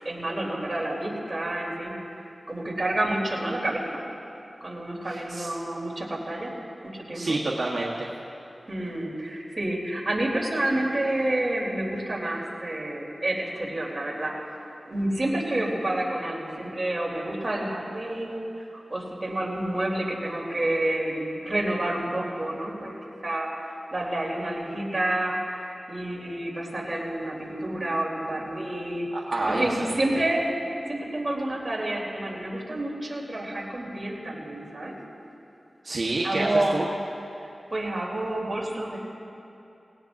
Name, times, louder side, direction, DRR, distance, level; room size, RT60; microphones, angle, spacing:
voice 1, 0.0-2.0 2.5-4.0 4.6-6.5 7.1-7.4 8.7-14.4 14.8-22.9 23.2-29.1 29.5-30.4 30.9-34.9 36.2-36.8 37.4-39.0, right 1 dB, 35° right, -4 dB, 3.5 m, -29 dB
voice 2, 5.1-5.5 7.1-8.1 29.1-30.0 35.8-36.8, right 2 dB, 70° right, -4 dB, 1.3 m, -28 dB
19.5 x 17.0 x 2.7 m, 2.9 s
wide cardioid pair, 55°, 0 cm